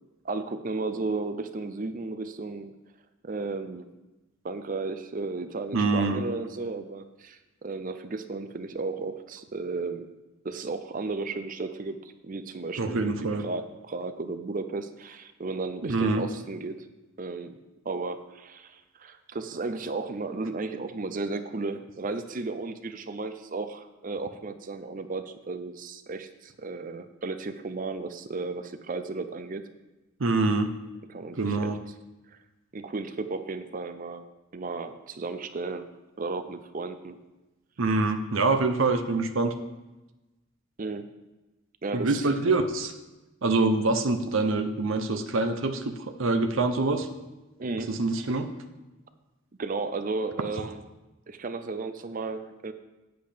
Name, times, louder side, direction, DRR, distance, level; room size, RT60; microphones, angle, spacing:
voice 1, 0.2-2.7 3.2-3.9 4.4-10.1 10.4-13.1 13.4-16.9 17.2-17.6 17.8-29.6 31.1-31.7 32.7-34.3 34.5-35.9 36.2-37.2 40.8-41.1 41.8-42.4 47.6-47.9 49.6-50.8 51.3-52.7, right 3 dB, 40° right, 10 dB, 0.5 m, -34 dB
voice 2, 5.7-6.2 12.8-13.4 15.8-16.2 30.2-30.7 31.4-31.8 37.8-39.5 41.9-42.9 43.4-47.1 47.9-48.5 50.6-50.7, right 3 dB, 70° right, 7 dB, 0.7 m, -25 dB
8.6 x 7.9 x 5.0 m, 1.1 s
head